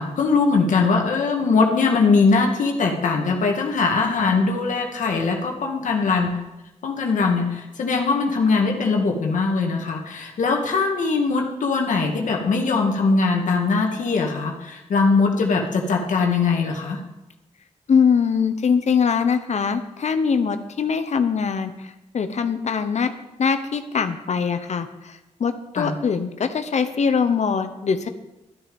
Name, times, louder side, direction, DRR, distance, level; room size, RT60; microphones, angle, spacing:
voice 1, 0.0-6.4 6.8-17.0 25.8-25.9, left 4 dB, 90° left, 1 dB, 1.8 m, -21 dB
voice 2, 17.9-23.1 23.4-28.1, left 6 dB, 65° left, 9 dB, 0.9 m, -22 dB
13.0 x 9.5 x 5.3 m, 0.97 s
wide cardioid pair, 90°, 13 cm